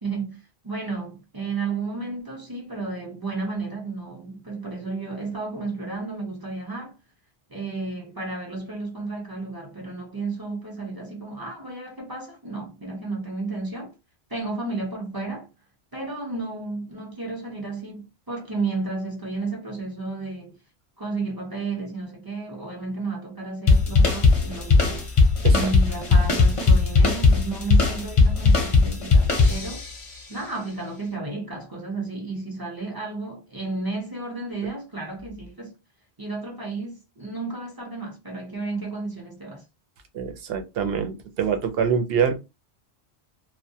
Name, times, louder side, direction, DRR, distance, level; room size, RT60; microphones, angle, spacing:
voice 1, 0.0-6.9 7.5-13.9 14.3-15.5 15.9-20.6 21.0-29.8 30.3-35.7 36.2-39.6, right 3 dB, 25° right, 0.5 m, -32 dB
sound 1, 23.7-30.0, left 3 dB, 40° left, 0.6 m, -18 dB
voice 2, 40.1-42.4, right 7 dB, 65° right, 0.8 m, -25 dB
2.2 x 2.1 x 2.7 m
omnidirectional pair, 1.1 m